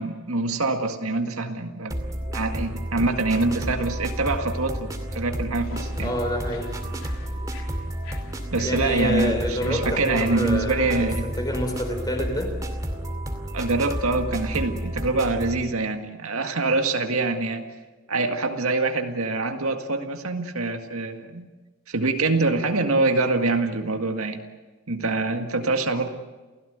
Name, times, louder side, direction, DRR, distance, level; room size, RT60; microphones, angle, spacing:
voice 1, 0.0-2.1 2.3-6.1 8.5-11.3 13.5-17.7 18.1-21.5 21.9-24.4 24.9-26.1, right 3 dB, 85° right, 5 dB, 1.9 m, -25 dB
sound 1, 1.9-15.6, right 1 dB, 15° right, 2.4 m, -31 dB
sound 2, 5.5-10.7, left 3 dB, 75° left, 3.5 m, -47 dB
voice 2, 6.0-6.8 8.6-12.6, left 1 dB, 20° left, 4 dB, 4.8 m, -27 dB
28.5 x 17.0 x 8.1 m, 1.3 s
head